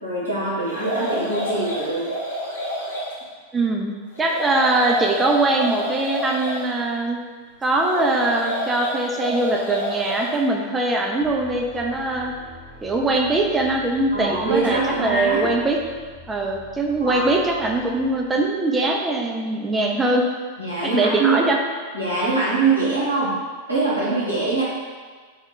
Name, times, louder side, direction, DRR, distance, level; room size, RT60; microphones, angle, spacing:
voice 1, 0.0-2.1 14.1-15.5 17.0-17.2 20.6-21.4 21.9-23.3 23.7-24.6, right 3 dB, 90° right, -10 dB, 0.7 m, -23 dB
sound 1, 0.7-3.1 4.1-6.6 7.8-10.3, equal, 75° left, 0.8 m, -29 dB
voice 2, 3.5-7.2 7.6-12.3 12.8-15.8 16.3-20.2 20.8-21.6, right 2 dB, 15° right, 1 dB, 0.3 m, -22 dB
sound 2, 11.2-18.6, left 1 dB, 20° left, 0.7 m, -46 dB
2.2 x 2.1 x 3.7 m, 1.5 s
figure-of-eight pair, 90°, 0 cm